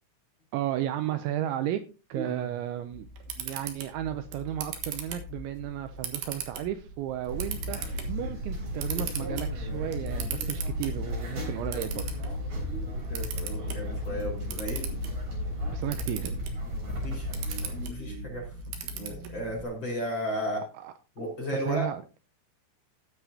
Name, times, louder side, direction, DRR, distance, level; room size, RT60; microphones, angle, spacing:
voice 1, 0.5-1.8 2.1-3.1 3.4-12.1 15.7-16.4 20.8-20.9 21.7-22.0, right 12 dB, 90° right, 9 dB, 2.6 m, -33 dB
voice 2, 2.1-2.4 12.7-14.9 17.0-18.5 18.8-20.6 21.1-21.9, equal, 25° left, -1 dB, 4.8 m, -35 dB
Camera, 2.9-19.6, right 5 dB, 65° right, 2.7 m, -40 dB
sound 1, 7.3-17.9, left 1 dB, 45° right, 5.3 m, -34 dB
18.0 x 7.0 x 2.8 m, 0.32 s
omnidirectional pair, 6.0 m